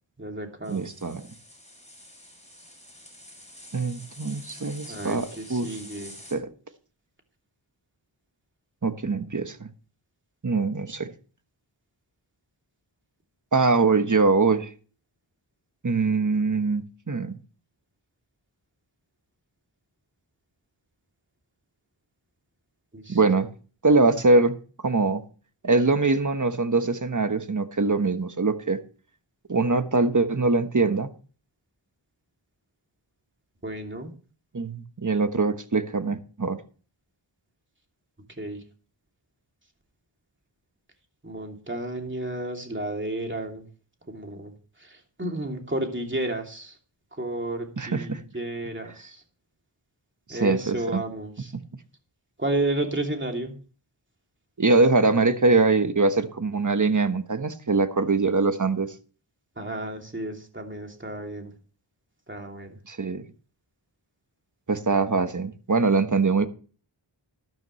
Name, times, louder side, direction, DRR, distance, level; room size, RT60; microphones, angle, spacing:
voice 1, 0.2-0.9 4.9-6.1 22.9-23.2 33.6-34.1 38.4-38.6 41.2-43.6 44.1-44.5 44.8-46.8 47.2-49.2 50.3-51.5 52.4-53.5 59.6-61.5 62.3-62.8, right 1 dB, 25° right, 2.8 m, -32 dB
sound 1, 0.6-6.4, left 1 dB, 15° left, 6.3 m, -47 dB
voice 2, 0.7-1.3 3.7-5.8 6.3-6.5 8.8-9.7 10.4-11.1 13.5-14.7 15.8-17.4 23.1-23.5 23.8-24.6 24.8-25.2 25.6-28.8 29.5-31.1 34.5-36.6 47.8-48.2 50.3-51.0 51.5-51.6 54.6-58.9 62.9-63.2 64.7-66.5, right 3 dB, 40° right, 1.3 m, -23 dB
12.0 x 12.0 x 3.2 m
wide cardioid pair, 55°, 46 cm